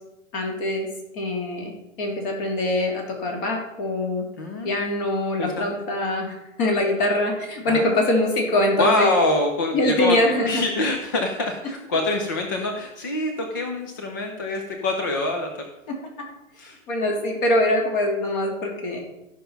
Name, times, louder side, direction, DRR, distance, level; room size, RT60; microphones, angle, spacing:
voice 1, 0.3-0.9 1.1-4.3 4.6-9.1 9.7-10.6 16.9-19.0, left 1 dB, 40° left, 1 dB, 3.0 m, -23 dB
voice 2, 4.4-4.8 5.4-5.7 7.7-8.0 8.8-10.2 10.4-15.7 16.6-16.8, left 2 dB, 15° left, 3 dB, 0.3 m, -25 dB
13.0 x 5.7 x 5.6 m, 0.93 s
hypercardioid pair, 135°, 41 cm